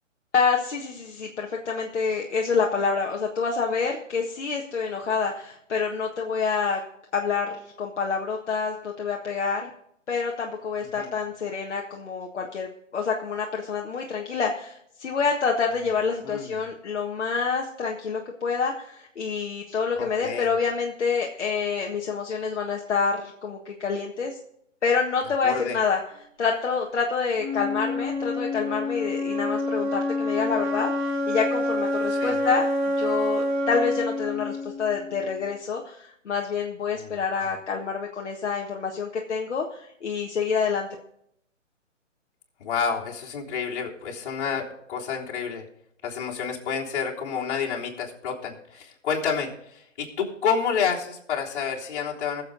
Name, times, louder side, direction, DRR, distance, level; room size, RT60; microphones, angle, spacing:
voice 1, 0.3-6.8 7.1-9.7 10.1-12.7 12.9-24.4 24.8-26.0 26.4-32.6 33.0-40.9, left 5 dB, 65° left, 0 dB, 1.6 m, -27 dB
voice 2, 16.2-16.5 20.0-20.5 25.4-25.8 32.1-32.4 36.9-37.2 42.6-45.7 46.0-52.4, left 6 dB, 40° left, -4 dB, 3.6 m, -29 dB
Wind instrument woodwind instrument, 27.4-35.4, left 1 dB, 35° right, 3.1 m, -27 dB
21.0 x 7.6 x 3.9 m, 0.73 s
figure-of-eight pair, 140°, 38 cm